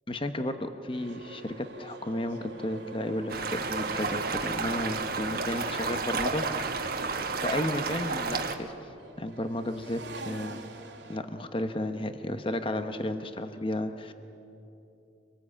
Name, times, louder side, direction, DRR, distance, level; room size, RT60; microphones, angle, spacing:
voice 1, 0.1-6.4 7.4-8.7 9.2-10.6 11.1-14.1, left 1 dB, 30° left, 8 dB, 1.0 m, -33 dB
sound 1, 0.9-11.2, right 3 dB, 70° right, 2.3 m, -47 dB
sound 2, 3.3-8.5, right 4 dB, 50° right, 1.4 m, -31 dB
25.5 x 20.0 x 8.6 m, 2.8 s
head